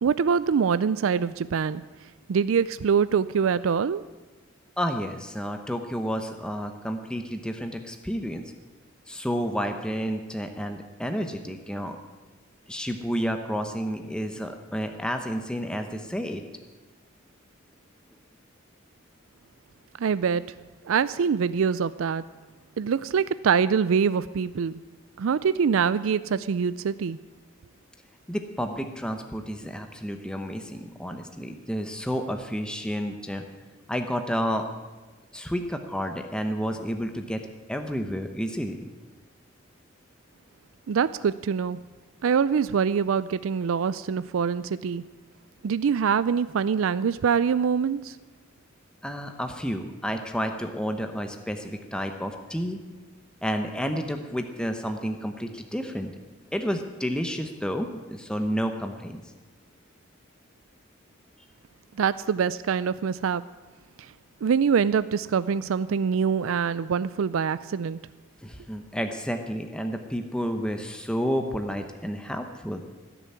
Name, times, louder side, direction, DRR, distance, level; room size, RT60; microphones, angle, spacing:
voice 1, 0.0-1.8 2.3-4.0 20.0-20.4 20.9-22.2 22.8-24.7 25.2-27.2 40.9-41.8 42.2-45.0 45.6-48.2 62.0-63.4 64.4-68.0, right 6 dB, 80° right, 16 dB, 0.4 m, -24 dB
voice 2, 4.8-8.4 9.1-12.0 12.7-16.4 28.3-33.4 33.9-34.7 35.3-37.4 37.7-38.8 49.0-52.8 53.4-56.1 56.5-59.2 68.4-72.8, equal, 5° left, 5 dB, 0.8 m, -30 dB
16.5 x 7.0 x 9.5 m, 1.2 s
head